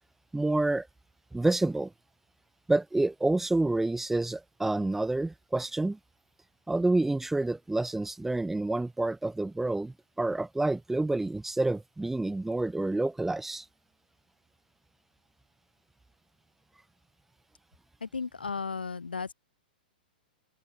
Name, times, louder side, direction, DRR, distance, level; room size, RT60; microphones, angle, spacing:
voice 1, 0.3-0.9 1.3-1.9 2.7-6.0 6.7-13.6, right 2 dB, 5° right, 0.7 m, -28 dB
voice 2, 18.0-19.3, left 5 dB, 80° left, 1.6 m, -35 dB
open air
figure-of-eight pair, 105°, 5 cm